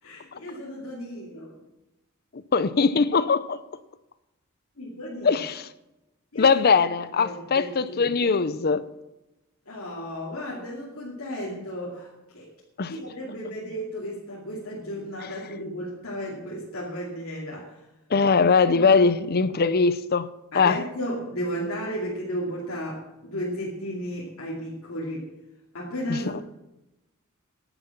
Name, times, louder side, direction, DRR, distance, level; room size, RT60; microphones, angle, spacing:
voice 1, 0.0-1.5 4.8-5.3 6.3-6.6 7.1-8.2 9.7-12.5 12.9-17.9 18.7-19.0 20.5-25.3 25.7-26.3, equal, 75° left, 2.6 m, -34 dB
voice 2, 2.5-3.6 5.2-5.7 6.3-8.8 12.8-12.9 18.1-20.3 20.5-20.8 26.1-26.4, left 5 dB, 45° left, 0.6 m, -21 dB
10.5 x 9.6 x 7.1 m
head